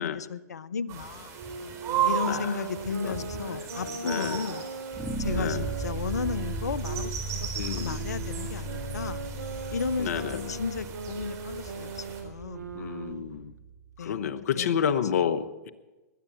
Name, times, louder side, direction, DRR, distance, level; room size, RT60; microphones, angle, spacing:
voice 1, 0.0-1.4 2.0-4.7 5.2-9.2 9.7-12.7 14.0-14.7, left 5 dB, 85° left, 20 dB, 0.6 m, -34 dB
sound 1, 0.9-12.2, right 8 dB, 35° right, 4.1 m, -36 dB
Wind instrument woodwind instrument, 1.3-7.1 7.9-13.3, right 4 dB, 90° right, 1.1 m, -39 dB
voice 2, 2.3-2.6 3.0-3.1 3.5-4.5 5.4-5.7 7.5-8.0 10.0-10.5 12.7-13.5 14.0-15.7, left 8 dB, 70° left, 13 dB, 1.0 m, -30 dB
sound 2, 4.9-14.0, right 2 dB, 15° right, 2.4 m, -37 dB
19.5 x 10.0 x 6.2 m, 1.1 s
hypercardioid pair, 110°, 9 cm